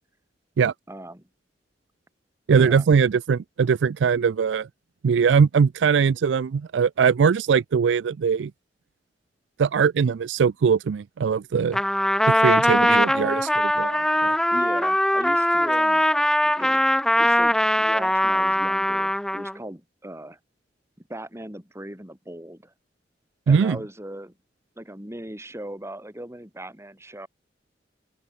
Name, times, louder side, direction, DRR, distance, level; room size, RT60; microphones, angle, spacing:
voice 1, 0.9-1.3 2.5-2.9 14.5-16.1 16.4-16.8 17.2-20.4 21.1-22.7 23.5-24.3 24.8-27.3, right 1 dB, 15° right, 4.4 m, -38 dB
voice 2, 2.5-4.7 5.0-8.5 9.6-11.8 12.3-14.4 23.5-23.8, right 6 dB, 85° right, 0.4 m, -21 dB
Trumpet, 11.7-19.6, left 1 dB, 5° left, 0.9 m, -21 dB
open air
head